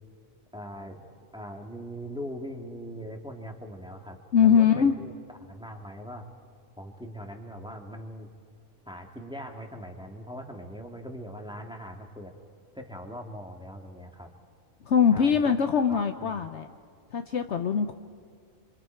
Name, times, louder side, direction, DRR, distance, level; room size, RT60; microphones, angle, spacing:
voice 1, 0.5-1.1 1.3-5.1 5.4-6.3 6.8-8.3 8.9-12.3 12.7-14.3 15.1-16.3, equal, 5° right, 2 dB, 1.8 m, -41 dB
voice 2, 4.3-4.9 14.9-16.7 17.1-17.9, left 7 dB, 60° left, 8 dB, 1.0 m, -22 dB
27.0 x 26.5 x 4.5 m, 2.3 s
omnidirectional pair, 1.4 m